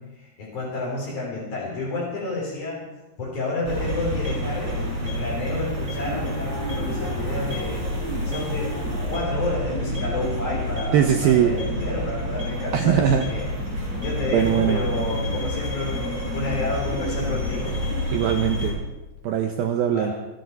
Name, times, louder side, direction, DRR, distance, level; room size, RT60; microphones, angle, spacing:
voice 1, 0.0-2.8 3.2-7.9 8.2-13.5 14.0-16.1 16.3-17.7 19.9-20.1, left 2 dB, 35° left, -6 dB, 4.4 m, -30 dB
sound 1, 3.6-18.7, left 1 dB, 25° right, 7.1 m, -28 dB
voice 2, 10.9-11.6 12.7-13.3 14.3-14.8 18.1-18.8 19.2-20.1, right 9 dB, 75° right, 5 dB, 2.3 m, -21 dB
29.0 x 10.5 x 4.6 m, 1.1 s
omnidirectional pair, 5.1 m